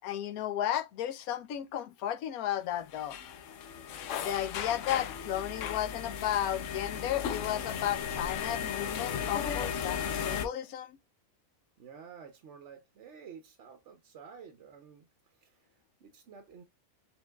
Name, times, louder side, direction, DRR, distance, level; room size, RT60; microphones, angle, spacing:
voice 1, 0.0-3.2 4.2-11.0, left 11 dB, 90° left, 1.1 m, -34 dB
sound 1, 2.9-10.5, left 8 dB, 70° left, 0.9 m, -35 dB
voice 2, 11.8-15.1 15.4-15.6 16.0-16.6, right 6 dB, 60° right, 0.9 m, -51 dB
4.8 x 3.7 x 2.2 m
omnidirectional pair, 1.5 m